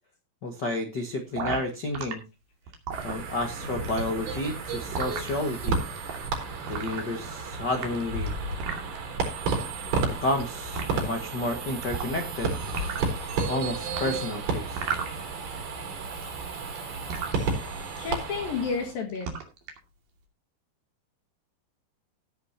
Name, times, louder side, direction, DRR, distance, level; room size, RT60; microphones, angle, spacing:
voice 1, 0.4-2.2 3.0-5.8 6.7-8.3 10.2-12.5 13.5-14.8, left 2 dB, 85° left, 5 dB, 0.9 m, -31 dB
sound 1, 1.4-2.1 2.7-3.6 3.8-5.3 6.0-6.2 6.7-7.4 7.7-9.0 9.8-10.4 10.8-10.9 11.8-12.4 12.6-13.1 14.0-15.6 15.9-17.4 18.0-18.2 18.5-18.8 19.1-19.8, right 6 dB, 55° right, 3.9 m, -34 dB
sound 2, 2.9-18.9, right 4 dB, 85° right, 6.4 m, -32 dB
sound 3, 3.6-13.4, left 3 dB, 40° left, 3.5 m, -42 dB
voice 2, 18.0-19.3, left 5 dB, 60° left, 3 dB, 3.4 m, -31 dB
17.0 x 9.5 x 2.8 m, 0.27 s
omnidirectional pair, 4.8 m